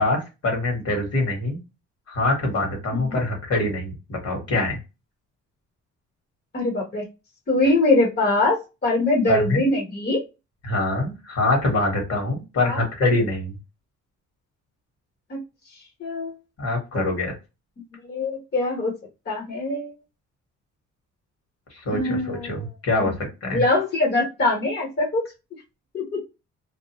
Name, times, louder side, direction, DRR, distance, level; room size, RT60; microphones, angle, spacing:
voice 1, 0.0-1.6 2.1-4.8 9.3-9.6 10.6-13.6 16.6-17.3 21.7-23.6, left 2 dB, 55° left, 1 dB, 1.5 m, -24 dB
voice 2, 6.5-7.0 7.5-10.2 12.6-12.8 15.3-15.4 16.0-16.3 18.1-18.9 19.3-19.9 21.9-22.6 23.0-23.1 23.5-25.2 25.9-26.2, left 2 dB, 35° left, -2 dB, 1.0 m, -23 dB
2.6 x 2.0 x 2.9 m, 0.26 s
cardioid pair, 90°, 30 cm